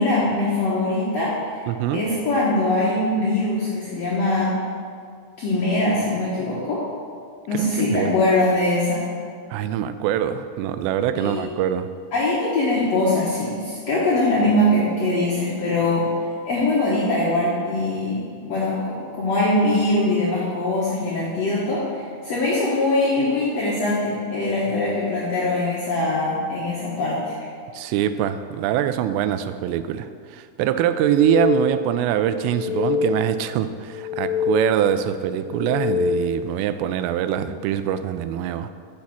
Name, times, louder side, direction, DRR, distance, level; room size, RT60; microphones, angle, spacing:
voice 1, 0.0-1.6 1.9-4.5 5.4-6.8 7.5-9.1 11.2-11.5 12.1-16.1 16.5-27.3, left 2 dB, 65° left, -7 dB, 1.6 m, -22 dB
voice 2, 1.7-2.0 7.5-8.1 9.5-11.9 27.7-38.7, right 10 dB, 90° right, 11 dB, 2.7 m, -23 dB
sound 1, 30.9-32.1 32.4-33.6 33.9-35.1 35.5-36.6, left 5 dB, 90° left, 2.8 m, -26 dB
7.9 x 6.4 x 7.0 m, 2.2 s
omnidirectional pair, 4.9 m